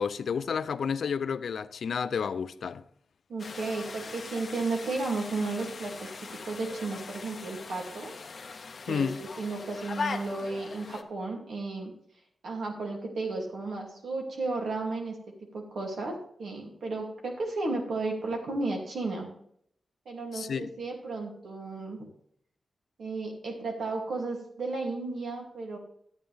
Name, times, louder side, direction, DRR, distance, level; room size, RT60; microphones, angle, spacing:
voice 1, 0.0-2.8 8.9-9.2 20.3-20.7, left 6 dB, 80° left, 0.4 m, -31 dB
voice 2, 3.3-6.1 6.4-8.1 8.9-11.9 12.4-15.2 15.5-19.3 20.1-22.1 23.0-25.8, right 3 dB, 85° right, 2.6 m, -33 dB
sound 1, 3.4-11.0, left 4 dB, 55° left, 0.8 m, -40 dB
11.5 x 8.9 x 3.4 m
wide cardioid pair, 120°, 0 cm